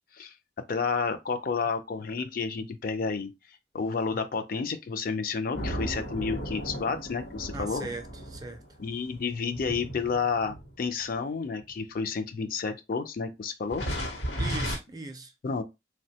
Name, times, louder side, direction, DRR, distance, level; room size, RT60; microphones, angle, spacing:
voice 1, 0.7-3.3 3.7-7.9 8.8-13.8 15.4-15.6, left 5 dB, 50° left, 0.4 m, -30 dB
sound 1, 5.5-11.0 11.7-11.8 13.7-14.8, equal, 80° left, 0.9 m, -35 dB
voice 2, 7.5-8.6 14.4-15.3, right 3 dB, 20° right, 0.4 m, -39 dB
3.3 x 2.1 x 2.7 m
head